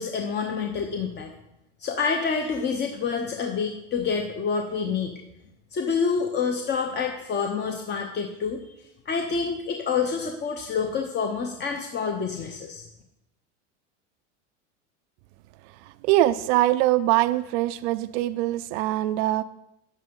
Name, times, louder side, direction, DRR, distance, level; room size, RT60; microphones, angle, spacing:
voice 1, 0.0-1.3 1.8-5.2 5.7-8.6 9.1-12.8, left 5 dB, 30° left, 4 dB, 0.8 m, -27 dB
voice 2, 16.0-19.4, right 15 dB, 65° right, 11 dB, 0.5 m, -23 dB
8.7 x 8.2 x 3.7 m, 0.87 s
hypercardioid pair, 100°, 37 cm